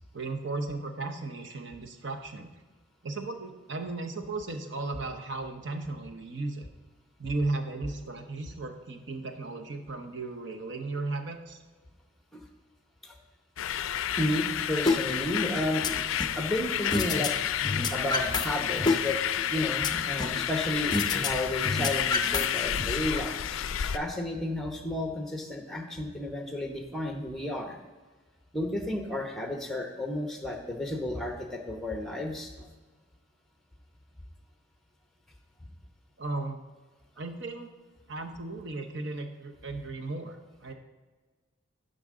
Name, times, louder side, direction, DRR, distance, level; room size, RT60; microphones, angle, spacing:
voice 1, 0.1-2.5 3.0-6.7 7.2-11.6 36.2-36.6 37.2-37.7 38.1-40.7, right 2 dB, 60° right, 5 dB, 0.9 m, -35 dB
sound 1, 13.6-24.0, left 10 dB, 70° left, 0.4 m, -30 dB
voice 2, 14.2-15.9 16.3-17.3 17.9-19.2 19.5-27.8 28.5-32.7, left 1 dB, ahead, 3 dB, 0.9 m, -32 dB
sound 2, 14.9-15.0 15.4-16.4 16.9-17.3 17.6-18.5 18.8-20.4 20.9-21.3 21.6-22.9, left 3 dB, 20° left, 0.5 m, -28 dB
12.0 x 5.4 x 3.7 m, 1.3 s
head